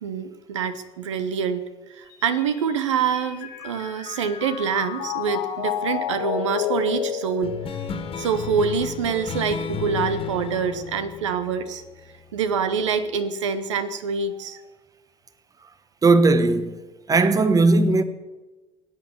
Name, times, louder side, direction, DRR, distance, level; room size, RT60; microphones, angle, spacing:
voice 1, 0.0-7.6 8.2-11.8 12.3-14.6, right 6 dB, 75° right, 0.9 m, -26 dB
Mallet percussion, 2.1-8.5, left 9 dB, 60° left, 2.0 m, -31 dB
sound 1, 7.4-12.4, left 7 dB, 35° left, 1.9 m, -33 dB
voice 2, 16.0-16.8 17.1-18.0, right 3 dB, 20° right, 1.1 m, -17 dB
19.5 x 9.0 x 7.0 m
figure-of-eight pair, 60°, 16 cm